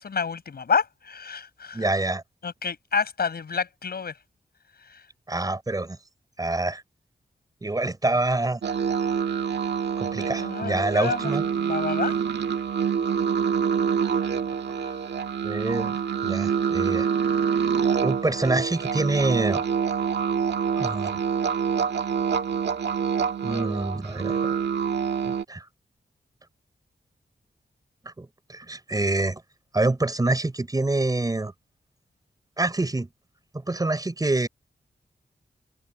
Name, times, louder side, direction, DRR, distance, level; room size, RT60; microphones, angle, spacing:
voice 1, 0.0-1.9 2.4-4.1 4.9-5.0 10.2-11.3 11.6-12.2 14.8-14.9, left 6 dB, 65° left, 5.4 m, -29 dB
voice 2, 1.7-2.2 5.3-6.0 6.4-6.8 7.6-8.6 10.0-11.4 15.4-16.0 16.2-17.1 18.0-19.6 20.8-21.2 23.4-24.5 25.3-25.7 28.0-29.4 29.7-31.5 32.6-33.1 33.7-34.5, right 2 dB, 20° right, 5.2 m, -26 dB
sound 1, 8.6-25.4, right 7 dB, 80° right, 1.7 m, -26 dB
wide cardioid pair, 170°, 17 cm